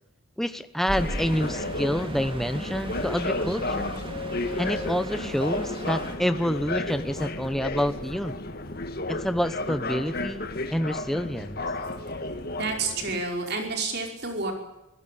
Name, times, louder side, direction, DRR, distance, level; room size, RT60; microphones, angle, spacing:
voice 1, 0.4-3.9 4.6-8.4 9.1-11.6, equal, ahead, 10 dB, 0.9 m, -28 dB
sound 1, 0.9-13.2, left 2 dB, 45° left, 2.0 m, -33 dB
sound 2, 0.9-6.2, right 1 dB, 25° right, 2.5 m, -38 dB
voice 2, 12.6-14.5, right 3 dB, 50° right, 2 dB, 5.3 m, -29 dB
26.5 x 17.0 x 8.7 m, 0.97 s
head